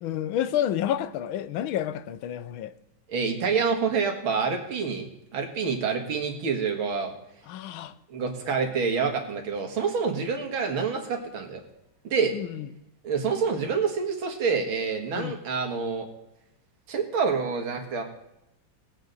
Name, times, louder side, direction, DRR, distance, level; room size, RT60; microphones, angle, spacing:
voice 1, 0.0-2.7 7.5-8.0 12.3-12.7 15.1-15.4, left 11 dB, 85° left, 1.5 m, -29 dB
voice 2, 3.1-5.1 5.3-7.1 8.1-11.6 12.0-12.3 13.0-16.1 16.9-18.0, right 5 dB, 85° right, 2.5 m, -27 dB
19.5 x 8.3 x 4.0 m
omnidirectional pair, 2.2 m